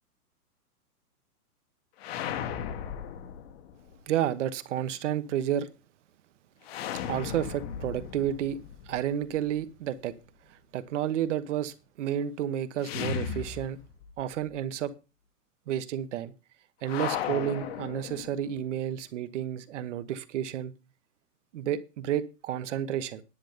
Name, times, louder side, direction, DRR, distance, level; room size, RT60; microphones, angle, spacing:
sound 1, 2.0-4.0 6.6-9.6 12.8-14.2 14.5-14.6 16.8-18.6, left 8 dB, 40° left, 1.2 m, -36 dB
voice 1, 4.1-5.7 7.1-8.6 8.9-10.1 10.5-13.8 14.2-14.9 15.7-16.3 16.8-20.7 21.5-23.2, right 10 dB, 50° right, 1.2 m, -31 dB
10.5 x 9.1 x 5.1 m
hypercardioid pair, 150°, 46 cm